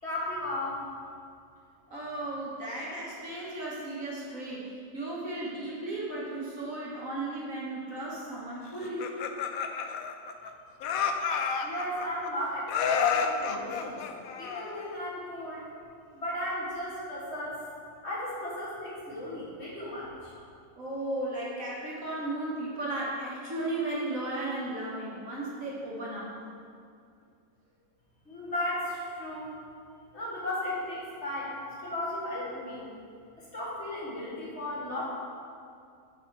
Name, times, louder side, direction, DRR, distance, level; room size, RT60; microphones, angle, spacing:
voice 1, 0.0-0.8 11.6-14.0 14.4-15.7 16.1-17.6 18.0-20.3 28.3-29.5 30.1-32.8 33.4-35.0, left 1 dB, 40° left, -7 dB, 1.7 m, -35 dB
voice 2, 1.9-9.1 20.8-26.3, right 2 dB, 50° right, -6 dB, 1.8 m, -35 dB
Laughter, 8.8-10.5 10.8-12.3 12.7-14.9, left 6 dB, 70° left, 0.8 m, -30 dB
8.1 x 5.3 x 4.7 m, 2.4 s
omnidirectional pair, 1.9 m